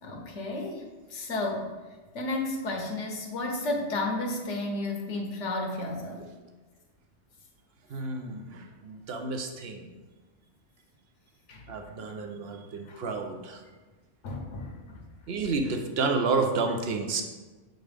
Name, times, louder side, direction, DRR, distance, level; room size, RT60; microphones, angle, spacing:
voice 1, 0.0-1.7 2.1-6.3 11.5-11.7 12.8-13.0 14.2-15.0, left 2 dB, 70° left, 1 dB, 1.2 m, -32 dB
voice 2, 7.9-9.9 11.7-13.6 15.3-17.2, right 4 dB, 60° right, 4 dB, 0.9 m, -30 dB
7.2 x 3.9 x 3.3 m, 1.3 s
omnidirectional pair, 1.3 m